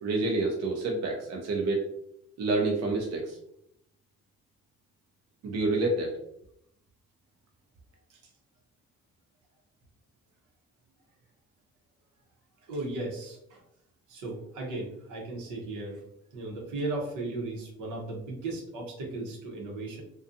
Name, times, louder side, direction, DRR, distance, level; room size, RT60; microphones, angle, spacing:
voice 1, 0.0-1.9 2.4-3.4 5.4-6.2, right 2 dB, 60° right, 0 dB, 0.6 m, -28 dB
voice 2, 12.7-13.6 14.1-16.0 16.3-20.0, right 2 dB, 90° right, -1 dB, 0.9 m, -36 dB
2.5 x 2.3 x 2.5 m, 0.76 s
cardioid pair, 90°, 30 cm